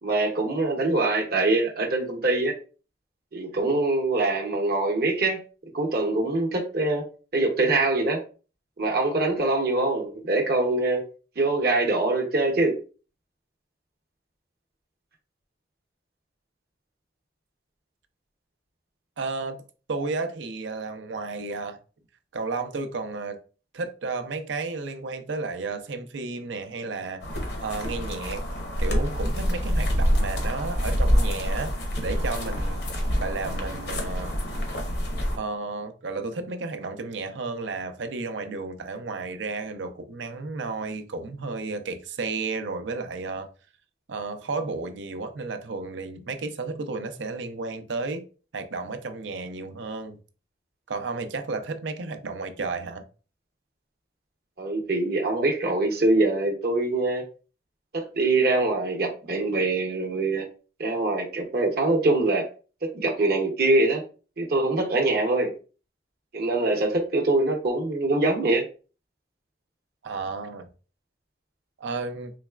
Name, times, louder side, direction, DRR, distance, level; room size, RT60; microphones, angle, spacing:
voice 1, 0.0-2.5 3.3-5.4 5.7-7.0 7.3-8.2 8.8-11.0 11.4-12.8 54.6-57.2 57.9-60.4 60.8-62.4 62.8-64.0 64.4-65.5 66.3-68.6, right 2 dB, 55° right, 0.7 m, -24 dB
voice 2, 19.2-19.6 19.9-21.8 22.3-23.4 23.7-27.3 27.6-28.4 28.8-31.7 32.0-32.8 33.2-34.4 35.4-43.5 44.1-48.2 48.5-50.2 50.9-53.0 70.0-70.7 71.8-72.3, right 3 dB, 85° right, 0.5 m, -32 dB
sound 1, 27.2-35.4, equal, 65° left, 0.9 m, -26 dB
4.0 x 3.1 x 2.3 m
head